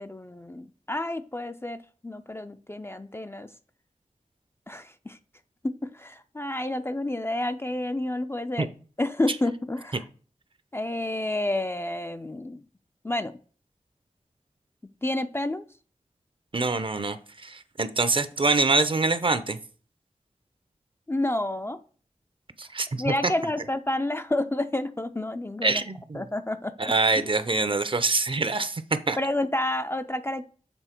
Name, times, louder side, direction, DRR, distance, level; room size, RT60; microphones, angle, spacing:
voice 1, 0.0-3.5 4.7-5.2 5.6-8.7 9.0-10.0 10.7-12.6 13.0-13.3 15.0-15.7 21.1-21.8 22.9-25.8 26.1-26.9 29.2-30.5, left 1 dB, 20° left, 9 dB, 0.3 m, -29 dB
voice 2, 16.5-17.2 17.4-19.6 22.6-23.1 25.6-26.2 26.8-29.2, right 3 dB, 40° right, 12 dB, 0.5 m, -25 dB
6.9 x 3.5 x 4.3 m, 0.42 s
wide cardioid pair, 65°, 13 cm